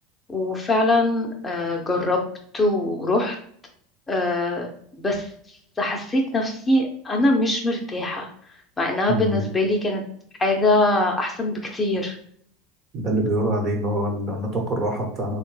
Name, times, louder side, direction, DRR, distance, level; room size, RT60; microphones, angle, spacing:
voice 1, 0.3-2.2 2.5-3.4 4.1-4.7 5.0-5.3 5.8-8.3 8.8-10.0 10.4-12.2, left 2 dB, 15° left, 1 dB, 0.6 m, -22 dB
voice 2, 9.1-9.4 12.9-15.4, right 1 dB, 45° right, 1 dB, 1.1 m, -25 dB
3.2 x 2.2 x 3.1 m, 0.63 s
supercardioid pair, 110°, 0 cm